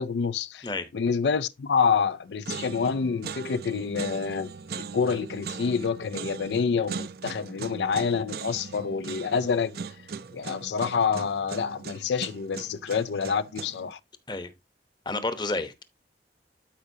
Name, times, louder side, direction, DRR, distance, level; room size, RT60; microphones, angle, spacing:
voice 1, 0.0-0.7 0.9-9.8 10.3-14.0, left 6 dB, 80° left, 0.4 m, -27 dB
sound 1, 1.8-2.1 2.5-13.9, right 5 dB, 55° right, 0.5 m, -39 dB
voice 2, 15.1-15.8, left 2 dB, 25° left, 0.9 m, -30 dB
12.5 x 4.9 x 2.7 m
head